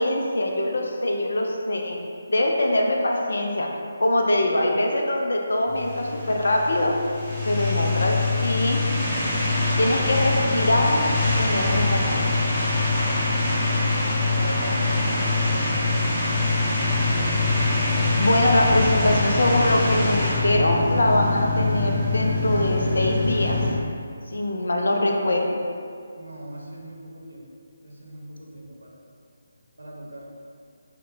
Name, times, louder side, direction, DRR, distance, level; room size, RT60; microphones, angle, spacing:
voice 1, 0.0-2.0 2.3-3.7 4.0-7.0 7.5-8.9 9.8-12.5 18.2-23.6 24.3-25.6, left 1 dB, 70° left, 1 dB, 0.5 m, -23 dB
sound 1, 5.7-23.7, left 3 dB, 10° left, 0.8 m, -24 dB
voice 2, 14.4-16.4 26.1-27.4 27.8-29.0 29.8-30.3, right 1 dB, 80° right, -3 dB, 0.9 m, -39 dB
5.6 x 2.2 x 2.6 m, 2.3 s
figure-of-eight pair, 150°, 0 cm